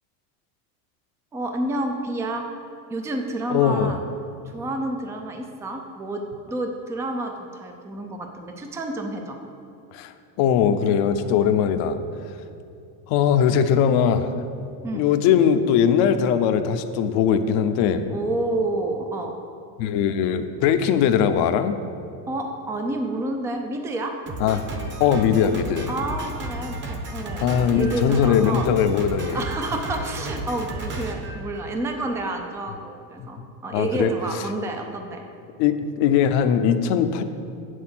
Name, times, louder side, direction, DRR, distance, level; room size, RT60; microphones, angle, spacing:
voice 1, 1.3-2.5 2.9-4.0 4.5-9.4 14.8-15.0 18.1-19.4 22.3-24.2 25.9-28.7 29.3-35.2, right 2 dB, 5° right, 3 dB, 0.4 m, -29 dB
voice 2, 3.5-4.0 9.9-12.0 13.1-14.3 14.9-18.1 19.8-21.8 24.4-24.6 25.0-25.9 27.4-29.4 33.2-33.3 33.7-34.1 35.6-37.2, left 8 dB, 50° left, 9 dB, 0.8 m, -20 dB
Drum kit, 24.3-32.0, right 1 dB, 25° right, 1.0 m, -33 dB
7.8 x 6.4 x 7.6 m, 2.6 s
supercardioid pair, 140°, 49 cm